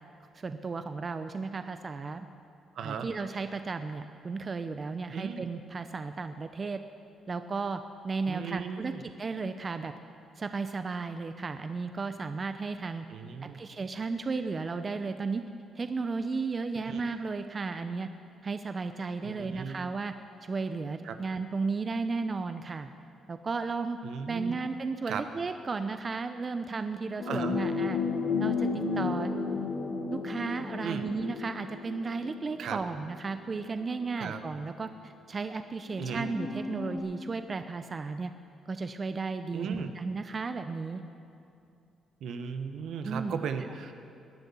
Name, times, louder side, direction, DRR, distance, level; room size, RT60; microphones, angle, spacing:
voice 1, 0.3-2.3 2.8-6.8 7.3-9.9 10.4-13.0 13.4-15.4 15.8-18.1 18.4-20.1 20.4-22.9 23.3-24.0 24.3-28.0 28.4-28.7 28.9-29.3 30.1-38.3 38.7-41.0 43.0-43.4, right 4 dB, 35° right, 9 dB, 0.7 m, -34 dB
voice 2, 2.7-3.1 5.1-5.4 8.3-9.0 13.1-13.6 16.8-17.0 19.2-19.8 21.0-21.2 24.0-24.6 25.1-25.2 27.3-27.6 30.8-31.0 32.6-32.8 34.2-34.4 36.0-36.3 39.5-39.9 42.2-43.9, right 7 dB, 70° right, 8 dB, 1.1 m, -36 dB
sound 1, 27.2-33.1 34.0-34.1 35.9-37.0, left 4 dB, 65° left, 3.0 m, -33 dB
18.5 x 10.5 x 7.1 m, 2.5 s
cardioid pair, 90°, 0 cm